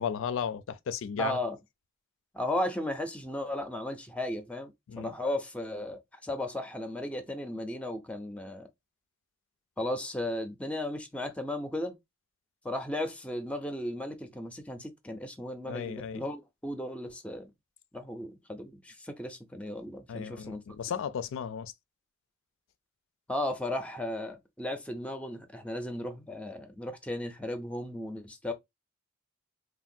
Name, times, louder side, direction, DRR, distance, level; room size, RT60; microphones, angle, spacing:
voice 1, 0.0-1.4 4.9-5.1 15.7-16.2 20.1-21.7, left 7 dB, 65° left, 0.3 m, -34 dB
voice 2, 1.2-1.6 2.3-8.7 9.8-11.9 12.6-17.5 17.9-20.6 23.3-28.5, left 1 dB, 5° left, 0.4 m, -35 dB
3.3 x 2.2 x 2.6 m
head